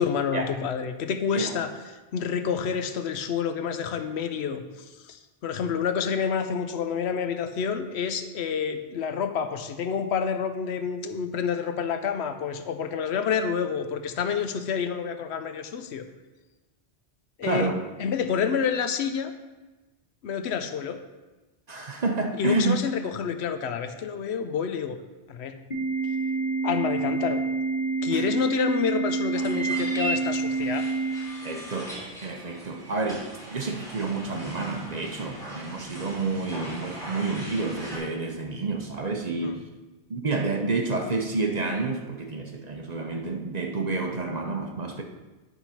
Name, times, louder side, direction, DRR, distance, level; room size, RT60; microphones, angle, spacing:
voice 1, 0.0-1.7 2.1-16.0 17.4-17.7 18.0-19.3 20.2-21.0 22.4-25.0 25.3-25.5 26.1-26.2 26.6-27.4 28.0-30.9 39.4-39.6, left 7 dB, 75° left, 9 dB, 0.9 m, -28 dB
voice 2, 17.4-17.8 21.7-22.8 28.1-28.3 31.4-31.9 32.2-39.6 40.1-45.0, right 3 dB, 45° right, 3 dB, 0.8 m, -29 dB
Organ, 25.7-31.7, right 4 dB, 45° left, 1.8 m, -28 dB
sound 1, 29.3-38.0, right 1 dB, 5° left, 2.7 m, -38 dB
10.5 x 3.9 x 5.7 m, 1.2 s
omnidirectional pair, 1.1 m